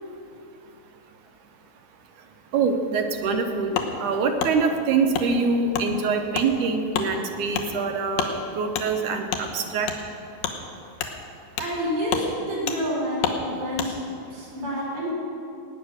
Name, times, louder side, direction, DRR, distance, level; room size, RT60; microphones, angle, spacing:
voice 1, 2.5-9.9, right 4 dB, 75° right, 5 dB, 1.9 m, -24 dB
Wood, 3.7-3.9 4.4-4.5 5.1-5.3 5.7-5.9 6.3-6.5 6.9-7.1 7.5-7.7 8.1-8.3 8.7-8.9 9.3-9.4 9.8-10.0 10.4-10.6 11.0-11.1 11.6-11.7 12.1-12.3 12.7-12.8 13.2-13.4 13.8-13.9, left 9 dB, 75° left, 2.8 m, -27 dB
voice 2, 11.6-15.1, equal, 90° right, -6 dB, 6.4 m, -29 dB
18.0 x 9.3 x 6.4 m, 2.6 s
omnidirectional pair, 4.3 m